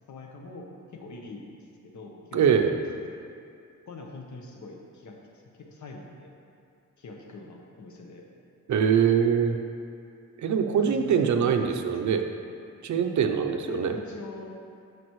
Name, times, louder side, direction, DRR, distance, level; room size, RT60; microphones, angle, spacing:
voice 1, 0.1-0.7 0.9-1.5 1.8-2.4 3.9-5.2 5.7-6.3 7.0-8.3 10.9-11.9 13.6-14.6, left 3 dB, 65° left, 1 dB, 1.1 m, -42 dB
voice 2, 2.3-2.8 8.7-9.6 10.4-12.3 12.8-13.9, right 7 dB, 65° right, 5 dB, 0.6 m, -23 dB
12.0 x 5.0 x 3.1 m, 2.5 s
wide cardioid pair, 120°, 31 cm